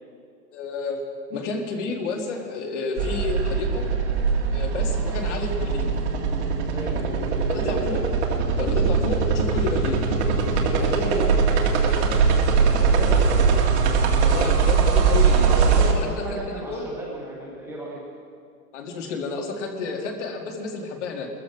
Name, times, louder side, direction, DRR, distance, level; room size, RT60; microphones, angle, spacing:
voice 1, 0.5-1.0 1.3-3.9 4.5-5.9 7.5-8.0 8.6-10.0 14.2-16.4 16.7-16.8 18.7-21.3, left 3 dB, 45° left, 3 dB, 2.1 m, -30 dB
sound 1, 3.0-15.9, right 5 dB, 40° right, 1.9 m, -21 dB
voice 2, 4.7-5.4 6.7-7.0 7.6-7.8 10.5-13.4 15.5-18.0, right 2 dB, 5° right, -5 dB, 0.9 m, -35 dB
21.0 x 14.0 x 4.9 m, 2.4 s
hypercardioid pair, 165°, 49 cm